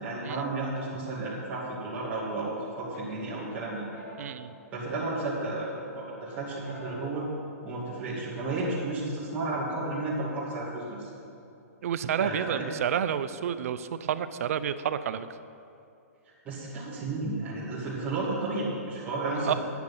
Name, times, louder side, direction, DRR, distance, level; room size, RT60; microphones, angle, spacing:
voice 1, 0.0-3.9 4.7-7.3 7.6-11.1 12.2-12.7 16.4-19.5, right 2 dB, 20° right, -9 dB, 2.4 m, -32 dB
sound 1, 2.9-5.2 5.6-7.2, left 1 dB, 85° left, 2.4 m, -50 dB
voice 2, 4.2-4.5 11.8-15.3 19.4-19.5, right 9 dB, 65° right, 13 dB, 0.6 m, -30 dB
11.5 x 9.4 x 5.6 m, 2.7 s
hypercardioid pair, 145°, 9 cm